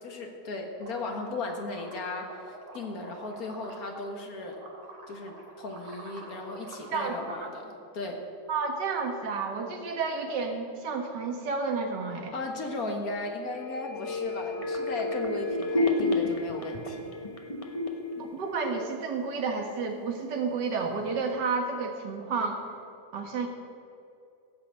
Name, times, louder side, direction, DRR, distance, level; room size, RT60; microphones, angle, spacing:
voice 1, 0.0-4.6 5.1-8.2 12.3-17.1, left 2 dB, 50° left, 2 dB, 1.8 m, -36 dB
sound 1, 0.8-4.1 4.4-7.3, right 2 dB, 75° right, 2.9 m, -47 dB
voice 2, 6.9-7.5 8.5-12.4 18.2-22.6 23.1-23.5, right 4 dB, 60° right, 3 dB, 2.0 m, -31 dB
sound 2, 13.6-19.3 19.6-19.7, left 2 dB, 25° left, 0.7 m, -31 dB
16.0 x 5.8 x 8.3 m, 2.6 s
omnidirectional pair, 2.2 m